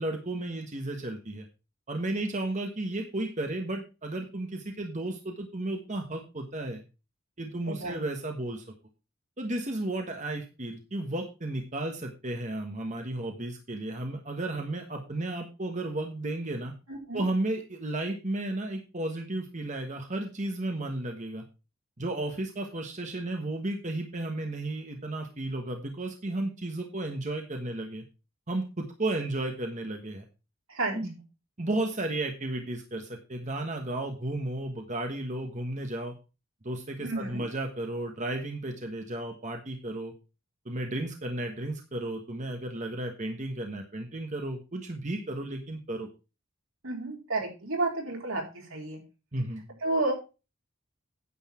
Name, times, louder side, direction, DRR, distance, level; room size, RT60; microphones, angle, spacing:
voice 1, 0.0-1.5 1.9-6.8 7.4-8.6 9.4-16.7 17.1-21.4 22.0-28.0 28.5-30.2 30.9-31.2 31.6-36.1 36.6-40.1 40.6-46.1 49.3-49.6, right 2 dB, 35° right, 3 dB, 1.3 m, -33 dB
voice 2, 7.7-8.0 16.9-17.3 30.7-31.0 37.0-37.4 46.8-49.0 49.8-50.1, right 2 dB, 80° right, 0 dB, 4.3 m, -31 dB
9.7 x 8.2 x 4.4 m, 0.31 s
head